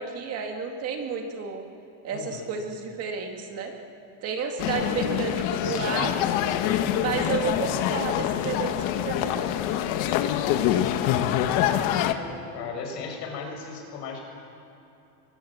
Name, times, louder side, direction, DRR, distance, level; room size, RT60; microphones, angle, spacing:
voice 1, 0.0-1.6 2.0-3.7 4.2-6.3 7.0-9.5, right 5 dB, 30° right, 3 dB, 2.0 m, -31 dB
voice 2, 2.1-2.4 5.6-6.1 11.4-14.2, left 5 dB, 80° left, 2 dB, 6.9 m, -37 dB
sound 1, 4.6-12.1, left 11 dB, 40° left, 1.2 m, -25 dB
29.5 x 24.0 x 7.2 m, 2.8 s
supercardioid pair, 175°, 49 cm